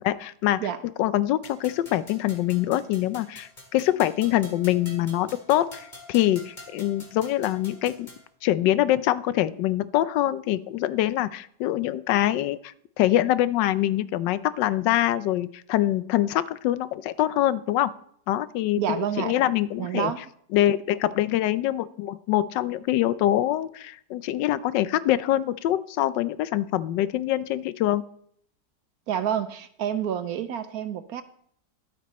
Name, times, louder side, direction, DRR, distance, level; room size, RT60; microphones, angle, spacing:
voice 1, 0.0-0.7 1.0-8.1 8.4-17.9 18.3-20.1 20.5-28.0, left 13 dB, 85° left, 17 dB, 1.3 m, -24 dB
sound 1, 1.4-8.3, left 1 dB, 25° left, 2.3 m, -47 dB
voice 2, 18.8-19.3 19.8-20.2 29.1-31.2, right 9 dB, 65° right, 12 dB, 1.0 m, -28 dB
12.0 x 8.8 x 4.1 m, 0.64 s
omnidirectional pair, 1.9 m